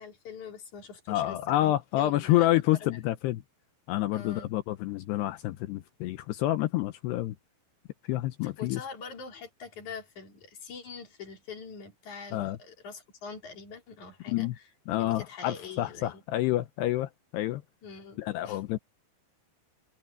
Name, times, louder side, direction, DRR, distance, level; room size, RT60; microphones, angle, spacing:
voice 1, 0.0-3.0 4.1-4.5 8.4-14.6 14.9-16.2 17.8-18.6, left 5 dB, 45° left, 4.5 m, -44 dB
voice 2, 1.1-3.4 3.9-7.4 8.1-8.8 12.3-12.6 14.3-14.6 14.9-17.6 18.2-18.8, left 15 dB, 80° left, 2.7 m, -28 dB
omnidirectional pair, 5.2 m